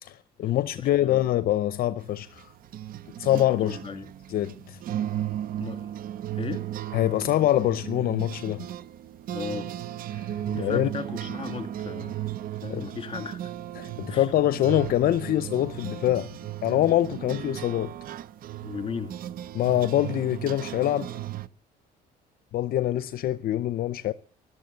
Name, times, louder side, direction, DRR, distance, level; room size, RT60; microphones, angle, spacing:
voice 1, 0.0-2.5 3.2-3.8 4.3-4.8 6.9-8.7 10.1-10.9 12.7-12.9 13.8-16.3 16.6-17.9 19.5-21.1 22.5-24.1, left 13 dB, 60° left, 0.6 m, -25 dB
voice 2, 0.8-1.2 3.6-4.1 5.6-5.9 6.3-6.7 9.3-9.7 10.4-12.2 12.6-13.5 14.1-14.3 18.6-19.2, left 6 dB, 30° left, 2.6 m, -36 dB
sound 1, 2.0-21.5, right 12 dB, 60° right, 0.7 m, -35 dB
14.0 x 12.5 x 7.7 m
cardioid pair, 110°, 17 cm